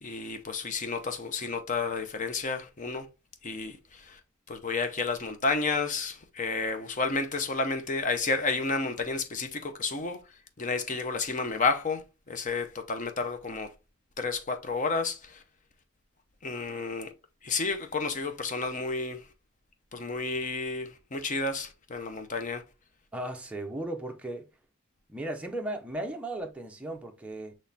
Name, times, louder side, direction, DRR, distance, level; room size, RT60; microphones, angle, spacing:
voice 1, 0.0-3.1 3.4-4.2 4.5-10.2 10.6-12.0 12.3-13.7 14.2-15.4 16.4-17.1 17.4-19.2 19.9-22.6, left 4 dB, 35° left, 0.6 m, -31 dB
voice 2, 23.1-24.5 25.1-27.5, right 1 dB, 5° right, 0.6 m, -36 dB
6.2 x 3.1 x 2.7 m
head